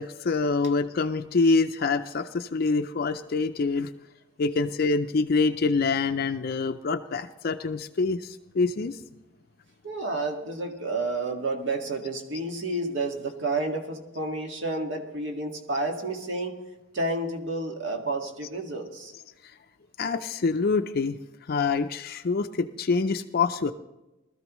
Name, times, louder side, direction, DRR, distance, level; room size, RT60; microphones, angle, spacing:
voice 1, 0.0-3.9 4.4-9.0 20.0-21.2 21.5-23.7, left 4 dB, 50° left, 8 dB, 0.4 m, -26 dB
voice 2, 9.8-16.6 16.9-19.1, right 2 dB, 65° right, 2 dB, 1.8 m, -30 dB
20.0 x 13.5 x 3.1 m, 1.0 s
head